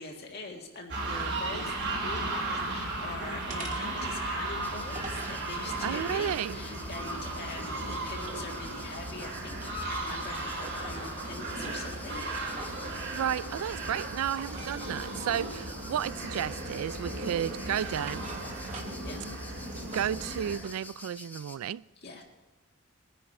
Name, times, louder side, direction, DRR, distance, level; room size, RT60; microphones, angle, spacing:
voice 1, 0.0-12.2 19.0-19.2 22.0-22.2, left 3 dB, 45° left, 1.7 m, -43 dB
sound 1, 0.9-20.6, right 2 dB, 50° right, 2.6 m, -36 dB
sound 2, 1.7-2.3 2.7-3.1 3.5-5.4 6.0-7.8 8.2-10.0 10.4-11.2 11.5-12.9 14.3-14.8 15.4-15.6 16.0-16.7 17.1-19.1 19.5-20.8, right 3 dB, 35° right, 1.8 m, -48 dB
sound 3, 4.6-21.6, left 2 dB, 10° left, 0.7 m, -49 dB
voice 2, 5.8-6.6 12.9-18.2 19.9-21.8, right 9 dB, 75° right, 0.3 m, -32 dB
20.5 x 10.0 x 4.4 m
head